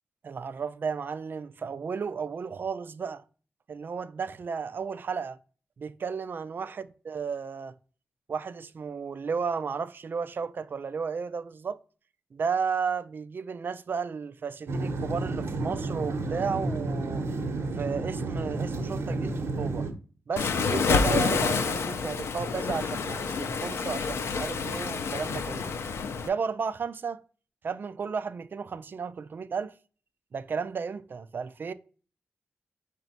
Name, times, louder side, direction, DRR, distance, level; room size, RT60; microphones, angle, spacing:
voice 1, 0.2-3.2 3.7-5.4 5.8-7.7 8.3-11.8 12.3-17.3 17.8-19.9 20.3-25.7 26.2-27.2 27.6-29.7 30.3-31.7, right 6 dB, 50° right, 0.4 m, -33 dB
sound 1, 14.7-19.9, right 2 dB, 85° right, 0.8 m, -31 dB
Waves surf, 20.4-26.3, left 5 dB, 85° left, 0.5 m, -28 dB
5.9 x 2.2 x 4.0 m
wide cardioid pair, 120°, 4 cm